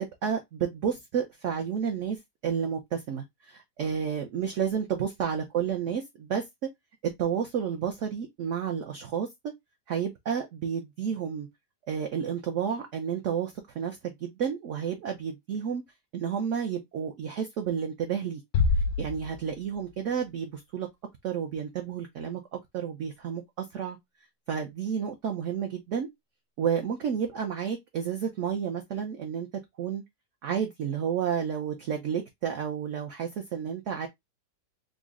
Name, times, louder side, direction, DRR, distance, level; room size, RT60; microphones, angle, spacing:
voice 1, 0.0-2.2 2.4-6.5 7.2-9.3 9.9-11.5 11.9-15.8 16.1-18.4 18.8-20.9 21.2-24.0 24.5-26.1 26.6-29.5 29.8-30.0 30.4-34.1, right 7 dB, 70° right, 0.7 m, -31 dB
Bass drum, 18.5-20.0, left 4 dB, 85° left, 0.7 m, -27 dB
3.9 x 2.1 x 3.4 m
omnidirectional pair, 1.9 m